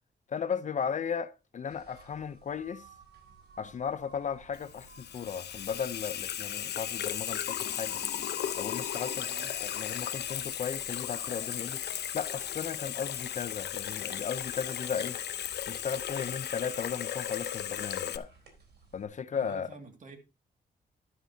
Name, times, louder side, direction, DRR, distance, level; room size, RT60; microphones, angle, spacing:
voice 1, 0.3-2.9 3.6-8.0 8.6-15.2 15.7-18.3 18.9-19.7, left 7 dB, 45° left, 0.6 m, -36 dB
sound 1, 1.7-19.0, right 4 dB, 80° right, 4.0 m, -58 dB
Water tap faucet / Sink (filling or washing), 4.5-18.2, left 10 dB, 85° left, 0.8 m, -36 dB
voice 2, 19.3-20.2, right 3 dB, 50° right, 2.2 m, -48 dB
11.5 x 11.5 x 2.8 m
wide cardioid pair, 140°, 17 cm